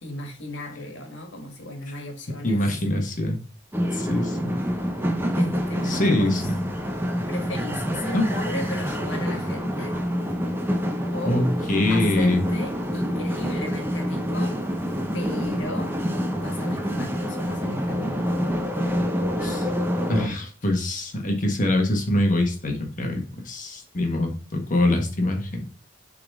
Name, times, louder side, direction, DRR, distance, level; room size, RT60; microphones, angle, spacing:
voice 1, 0.0-3.1 5.4-6.4 7.3-9.9 11.1-11.5 11.9-14.6 15.1-15.9 16.4-18.3, left 1 dB, 80° left, 3 dB, 1.7 m, -35 dB
voice 2, 2.4-3.4 3.9-4.5 5.8-6.5 8.1-8.2 11.3-12.4 19.4-19.7 20.1-25.7, left 1 dB, 45° left, 3 dB, 1.4 m, -24 dB
sound 1, 3.7-20.3, equal, 10° right, 0.8 m, -27 dB
6.7 x 4.0 x 3.6 m, 0.38 s
head